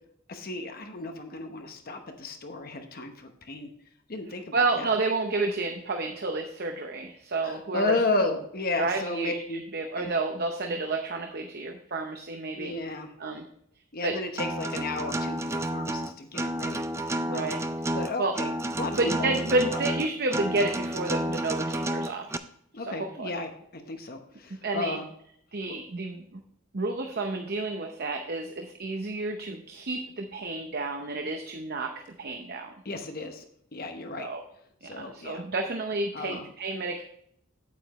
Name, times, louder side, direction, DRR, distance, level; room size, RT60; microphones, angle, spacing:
voice 1, 0.3-3.7 4.1-4.9 7.4-9.6 10.0-10.2 12.5-13.1 13.9-17.5 17.9-18.5 18.8-19.4 22.7-25.0 32.8-33.4 33.7-34.3 34.8-35.4 36.1-36.5, left 2 dB, 40° left, 5 dB, 1.0 m, -33 dB
voice 2, 4.5-8.0 8.7-9.4 9.7-12.7 13.2-13.4 14.0-14.2 17.3-18.3 18.9-22.4 22.8-23.3 24.6-25.0 25.5-26.4 26.7-32.7 34.2-34.4 34.8-37.0, right 2 dB, 45° right, 4 dB, 0.8 m, -30 dB
Acoustic guitar, 14.4-22.4, right 1 dB, 10° right, 0.3 m, -31 dB
9.1 x 8.4 x 3.1 m, 0.70 s
head